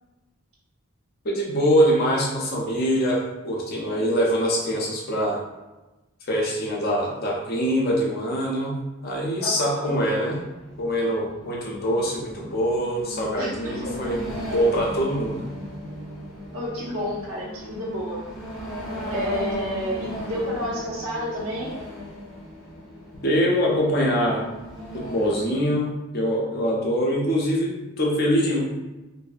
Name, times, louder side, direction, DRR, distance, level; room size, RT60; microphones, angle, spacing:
voice 1, 1.2-5.4 6.3-10.4 10.8-14.2 14.5-15.5 23.1-24.4 24.9-28.6, equal, 45° left, -2 dB, 0.5 m, -24 dB
voice 2, 9.4-9.9 13.4-14.2 16.5-18.2 19.1-21.7, equal, 75° right, -5 dB, 0.8 m, -30 dB
sound 1, 10.3-25.4, equal, ahead, 0.6 m, -37 dB
2.6 x 2.5 x 2.3 m, 1.1 s
head